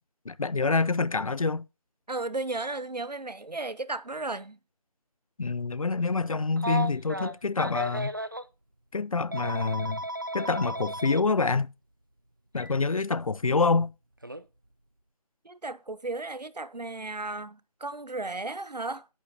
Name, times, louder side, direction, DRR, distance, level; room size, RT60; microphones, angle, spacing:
voice 1, 0.3-1.7 5.4-8.1 8.9-10.0 10.3-11.7 12.5-13.9, left 4 dB, 60° left, 0.5 m, -26 dB
voice 2, 2.1-4.6 15.4-19.1, right 2 dB, 90° right, 1.0 m, -34 dB
Telephone, 6.6-8.4 9.3-11.2 12.6-12.7 14.2-14.4, right 1 dB, 35° right, 0.4 m, -34 dB
10.0 x 10.0 x 2.9 m
figure-of-eight pair, 165°, 20 cm